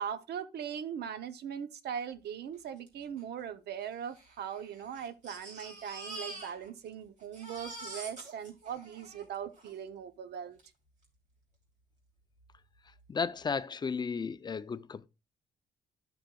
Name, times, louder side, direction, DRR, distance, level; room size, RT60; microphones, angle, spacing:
voice 1, 0.0-10.6, right 8 dB, 85° right, 0.7 m, -40 dB
Crying sobbing, 2.9-3.0 3.2-3.3 4.0-6.9 7.2-9.8 10.6-10.7 11.0-11.1, right 2 dB, 45° right, 3.0 m, -46 dB
voice 2, 13.1-15.1, left 5 dB, 25° left, 0.4 m, -34 dB
11.5 x 6.2 x 2.3 m
cardioid pair, 140°, 17 cm